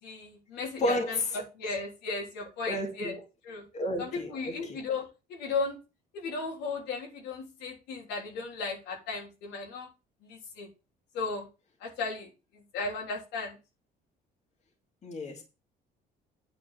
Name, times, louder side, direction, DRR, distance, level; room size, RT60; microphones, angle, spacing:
voice 1, 0.0-3.7 4.0-5.8 6.1-9.9 10.2-10.7 11.1-11.5 11.8-13.6, left 4 dB, 85° left, 3.5 m, -36 dB
voice 2, 0.8-1.2 2.6-3.1 3.7-4.8 15.0-15.4, left 1 dB, 40° left, 2.5 m, -31 dB
9.5 x 4.7 x 7.3 m
cardioid pair, 110°, 17 cm